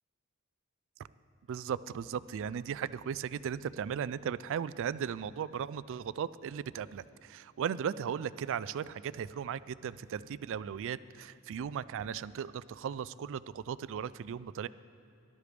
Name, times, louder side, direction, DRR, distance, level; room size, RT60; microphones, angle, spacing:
voice 1, 1.5-14.7, right 8 dB, 60° right, 17 dB, 0.3 m, -37 dB
18.5 x 12.0 x 3.4 m, 2.6 s
head